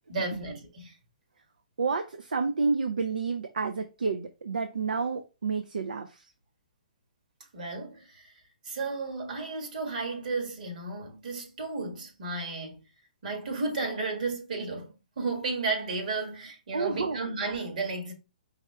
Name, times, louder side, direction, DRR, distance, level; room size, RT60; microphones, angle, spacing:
voice 1, 0.1-0.9 7.5-8.3 8.6-12.8 13.2-18.1, right 3 dB, 65° right, 1.9 m, -33 dB
voice 2, 1.8-6.3 16.7-17.3, right 4 dB, 80° right, 0.5 m, -30 dB
4.8 x 3.2 x 3.3 m
hypercardioid pair, 130°, 5 cm